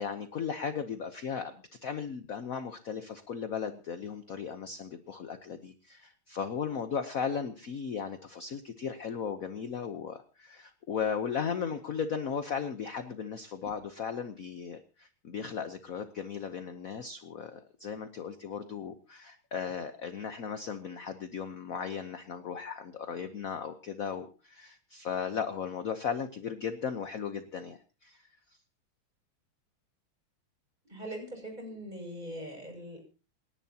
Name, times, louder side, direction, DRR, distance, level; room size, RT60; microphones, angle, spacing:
voice 1, 0.0-1.5 1.8-28.3, left 7 dB, 50° left, 9 dB, 1.2 m, -36 dB
voice 2, 30.8-33.0, equal, 20° right, 2 dB, 7.0 m, -41 dB
28.0 x 11.0 x 2.9 m, 0.33 s
omnidirectional pair, 2.3 m